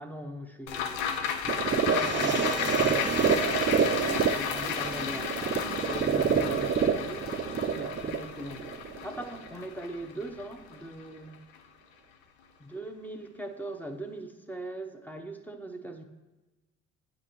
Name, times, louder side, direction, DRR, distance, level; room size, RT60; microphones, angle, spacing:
voice 1, 0.0-7.3 7.7-8.7 9.0-11.4 12.6-16.0, right 1 dB, 5° left, 5 dB, 0.8 m, -41 dB
sound 1, 0.7-11.2 11.5-11.6, left 7 dB, 85° left, 0.6 m, -33 dB
sound 2, 1.5-9.5, right 7 dB, 35° right, 0.5 m, -28 dB
8.2 x 4.9 x 3.0 m, 1.1 s
hypercardioid pair, 55°, 35 cm